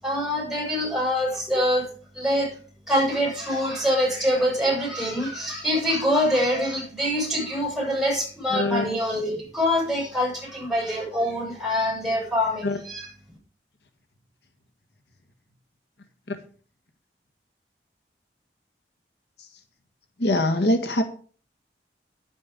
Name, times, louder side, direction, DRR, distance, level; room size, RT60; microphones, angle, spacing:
voice 1, 0.0-1.9 2.1-2.5 2.9-13.1, equal, ahead, -4 dB, 7.9 m, -25 dB
voice 2, 8.5-8.9 12.6-12.8 16.3-16.4 20.2-21.0, left 1 dB, 80° left, 6 dB, 1.7 m, -23 dB
10.0 x 9.8 x 5.3 m, 0.41 s
head